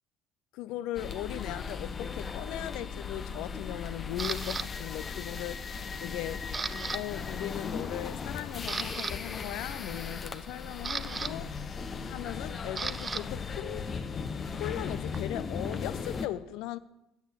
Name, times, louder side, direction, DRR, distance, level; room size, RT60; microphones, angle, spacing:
voice 1, 0.5-6.5 6.9-11.5 12.0-14.0 14.6-16.8, left 13 dB, 60° left, 0.5 m, -38 dB
sound 1, 0.9-16.3, left 5 dB, 35° left, 0.9 m, -37 dB
Camera, 4.2-4.7 5.3-5.6 5.9-7.0 7.3-7.5 8.0-8.1 8.5-9.1 10.3-13.2 13.5-16.1, right 5 dB, 25° right, 0.5 m, -37 dB
10.5 x 8.2 x 8.0 m
figure-of-eight pair, 55°, 0 cm